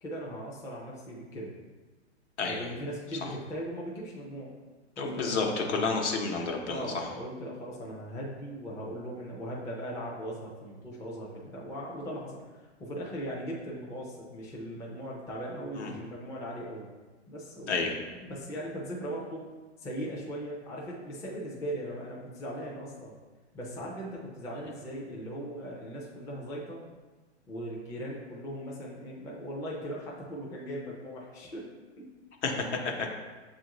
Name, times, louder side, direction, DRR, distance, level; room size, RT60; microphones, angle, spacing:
voice 1, 0.0-1.5 2.4-4.5 5.0-6.0 6.7-12.4 12.8-16.9 17.3-19.5 19.8-23.1 23.5-26.8 27.5-31.7 32.0-32.1, equal, 10° left, -4 dB, 0.4 m, -39 dB
voice 2, 5.0-7.1 15.8-15.9 17.7-17.9 32.4-33.1, left 4 dB, 70° left, 1 dB, 1.0 m, -30 dB
7.2 x 2.5 x 2.9 m, 1.3 s
hypercardioid pair, 130°, 35 cm